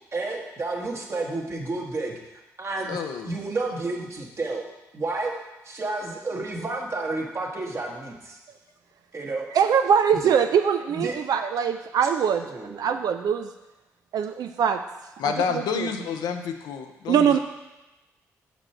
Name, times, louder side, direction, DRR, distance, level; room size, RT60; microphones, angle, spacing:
voice 1, 0.1-2.2 2.6-4.6 4.9-5.3 5.6-8.4 9.1-9.5 10.9-11.1 12.4-13.0, right 2 dB, 40° right, 0 dB, 1.4 m, -31 dB
voice 2, 2.9-3.4 15.2-17.4, left 6 dB, 80° left, 6 dB, 0.6 m, -29 dB
voice 3, 9.5-13.5 14.1-14.8 15.2-15.9 17.1-17.4, right 7 dB, 65° right, 7 dB, 0.4 m, -23 dB
6.4 x 5.1 x 4.4 m, 1.0 s
supercardioid pair, 50°, 7 cm